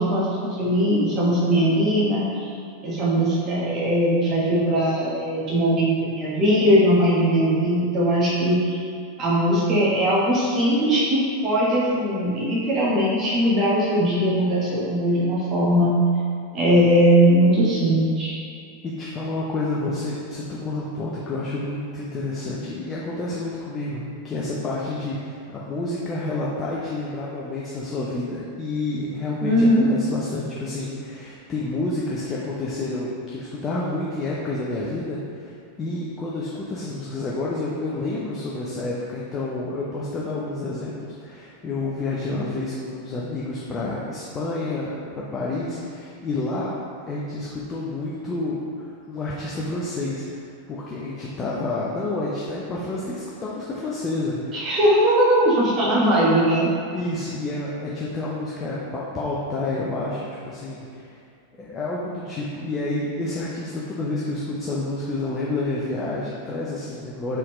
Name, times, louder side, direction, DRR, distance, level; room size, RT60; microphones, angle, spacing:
voice 1, 0.0-2.5 2.8-8.8 9.2-15.9 16.5-18.3 29.4-29.9 54.5-56.7, equal, 30° right, -6 dB, 1.3 m, -20 dB
voice 2, 18.8-46.7 47.1-54.7 55.8-55.9 56.9-61.2 61.6-67.4, left 2 dB, 25° left, -5 dB, 0.6 m, -29 dB
4.2 x 3.9 x 3.1 m, 2.4 s
figure-of-eight pair, 90°, 0 cm